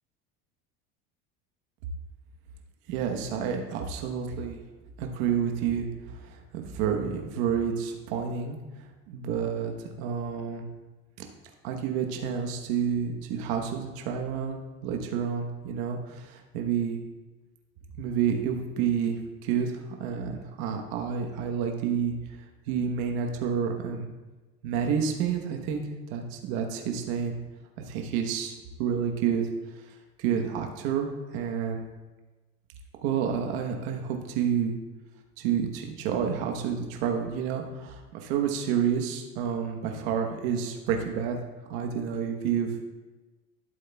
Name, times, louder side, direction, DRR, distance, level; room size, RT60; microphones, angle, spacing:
voice 1, 2.9-4.6 5.0-5.9 6.1-8.6 9.1-10.6 11.6-17.0 18.0-19.2 19.4-24.1 24.6-27.4 27.8-29.5 29.9-31.8 33.0-34.8 35.4-41.4 41.7-42.8, right 7 dB, 75° right, 3 dB, 1.2 m, -29 dB
12.0 x 7.8 x 2.3 m, 1.2 s
supercardioid pair, 115°, 29 cm